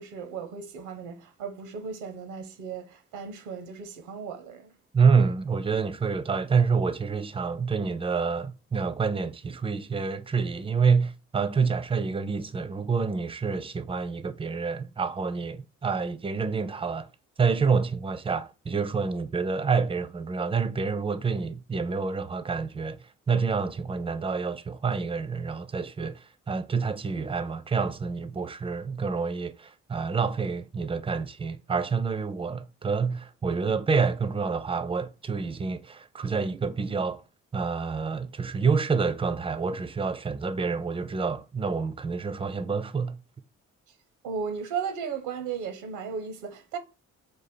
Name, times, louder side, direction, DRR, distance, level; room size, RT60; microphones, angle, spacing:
voice 1, 0.0-4.7 44.2-46.8, right 6 dB, 75° right, 0.7 m, -35 dB
voice 2, 4.9-17.1 17.4-23.0 23.3-37.2 37.5-43.2, right 5 dB, 15° right, 0.4 m, -27 dB
3.9 x 2.5 x 4.2 m
hypercardioid pair, 40°, 39 cm